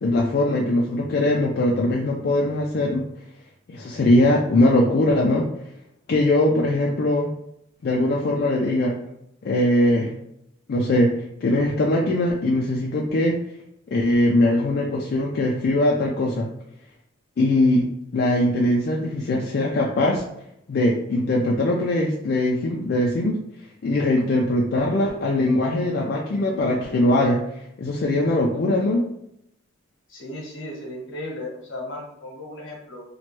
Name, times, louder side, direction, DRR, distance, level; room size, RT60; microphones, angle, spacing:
voice 1, 0.0-3.0 3.7-5.5 6.1-7.3 7.8-9.0 9.4-10.1 10.7-11.1 11.4-13.4 13.9-16.5 17.4-17.9 18.1-20.2 20.7-23.4 23.8-27.4 27.8-29.1, left 1 dB, 50° left, -2 dB, 0.3 m, -21 dB
voice 2, 30.1-33.0, left 1 dB, 75° left, -1 dB, 1.0 m, -35 dB
2.9 x 2.1 x 2.9 m, 0.77 s
head